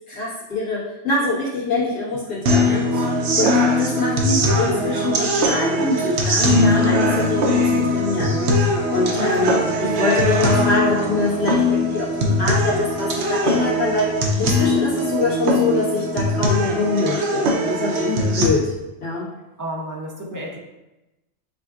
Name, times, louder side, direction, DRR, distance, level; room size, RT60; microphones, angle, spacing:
voice 1, 0.1-0.8 1.0-3.5 3.8-7.6 7.9-8.4 8.9-14.1 14.4-18.1 18.3-18.6 19.0-19.2, left 3 dB, 90° left, -9 dB, 2.0 m, -24 dB
sound 1, 2.5-18.5, left 1 dB, 65° right, 0.8 m, -20 dB
voice 2, 9.2-9.6 18.0-18.4 19.6-20.6, left 1 dB, 20° right, -2 dB, 0.5 m, -30 dB
7.5 x 2.5 x 2.4 m, 0.99 s
omnidirectional pair, 1.3 m